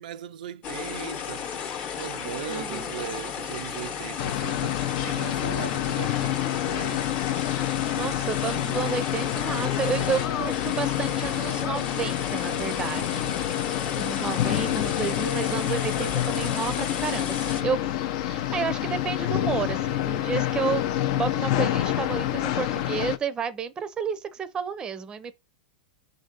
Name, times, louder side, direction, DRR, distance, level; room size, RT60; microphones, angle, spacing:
voice 1, 0.0-1.5 2.0-7.1, right 11 dB, 75° right, 0.4 m, -38 dB
sound 1, 0.6-17.6, left 7 dB, 30° left, 1.0 m, -34 dB
voice 2, 2.5-2.9 7.9-13.4 13.6-17.8 18.2-20.8 21.1-25.3, right 6 dB, 15° right, 0.6 m, -31 dB
sound 2, 4.2-23.2, left 13 dB, 55° left, 0.6 m, -28 dB
5.0 x 3.8 x 5.2 m
supercardioid pair, 140°, 5 cm